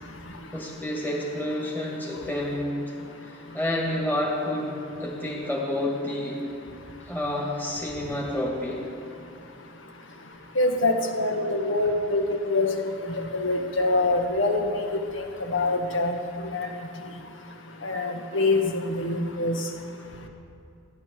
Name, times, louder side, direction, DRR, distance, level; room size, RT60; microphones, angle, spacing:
voice 1, 0.5-2.9 3.2-6.4 7.0-8.8, left 1 dB, 10° left, -3 dB, 2.3 m, -29 dB
voice 2, 10.5-12.9 13.3-14.8 15.1-16.2 16.5-16.7 17.8-19.6, left 2 dB, 65° left, 3 dB, 1.6 m, -25 dB
15.0 x 11.0 x 7.8 m, 2.5 s
head